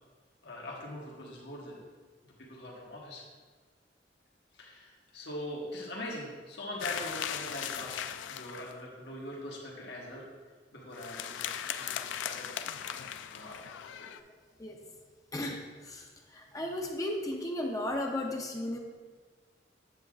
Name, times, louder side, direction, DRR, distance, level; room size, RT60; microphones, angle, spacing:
voice 1, 0.4-1.8 2.2-3.2 4.5-10.2 10.7-12.5 12.9-13.6 14.0-14.1, left 1 dB, 70° left, -3 dB, 1.3 m, -42 dB
sound 1, 6.8-8.8 10.9-14.2, left 9 dB, 85° left, 0.3 m, -38 dB
voice 2, 15.3-18.8, left 1 dB, 20° left, 1 dB, 0.6 m, -35 dB
7.7 x 7.3 x 2.4 m, 1.4 s
head